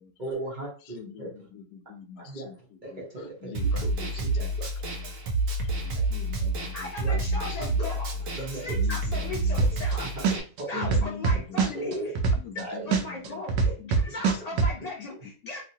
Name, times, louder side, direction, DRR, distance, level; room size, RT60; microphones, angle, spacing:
voice 1, 0.2-1.3 2.3-2.5 2.8-4.7 6.4-6.5 7.0-7.2 7.6-7.9 8.4-8.8 9.2-9.3 9.6-9.7 10.0-10.2 10.6-10.9 11.7-12.1 12.5-12.9 13.6-13.7 14.1-14.2, right 2 dB, 40° right, -4 dB, 0.8 m, -37 dB
voice 2, 0.9-1.3 1.5-2.5 2.9-3.0 3.4-4.1 4.4-4.5 5.8-6.7 8.8-9.0 9.4-9.6 10.7-11.4 12.4-12.8 13.8-14.0, left 7 dB, 85° left, 8 dB, 1.1 m, -42 dB
Snare drum, 3.5-10.4, right 2 dB, 65° right, 1.0 m, -29 dB
voice 3, 6.7-10.3 10.7-12.1 12.6-15.6, left 2 dB, 65° left, -2 dB, 0.4 m, -38 dB
sound 1, 9.6-9.9 10.2-12.6 12.9-14.7, right 5 dB, 85° right, 1.2 m, -23 dB
3.0 x 2.7 x 2.7 m, 0.36 s
omnidirectional pair, 1.6 m